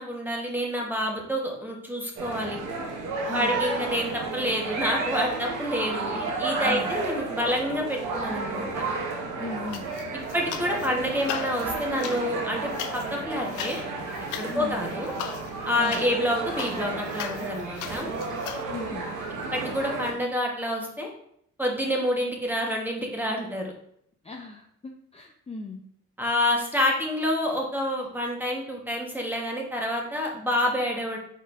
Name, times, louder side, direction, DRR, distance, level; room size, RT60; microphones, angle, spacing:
voice 1, 0.0-2.6 3.3-8.7 10.3-13.8 14.4-15.1 15.6-18.1 19.5-21.1 21.6-23.7 26.2-31.2, left 1 dB, 5° right, 0 dB, 1.2 m, -28 dB
sound 1, 2.2-20.1, right 3 dB, 85° right, 0.9 m, -32 dB
voice 2, 3.3-3.6 6.6-6.9 9.4-9.9 14.5-14.8 15.8-16.0 18.7-19.1 24.2-25.8, left 3 dB, 20° left, 1 dB, 0.6 m, -37 dB
sound 2, 9.7-10.9 11.2-18.6, left 9 dB, 85° left, 0.5 m, -38 dB
5.2 x 3.9 x 2.6 m, 0.72 s
cardioid pair, 90°, 30 cm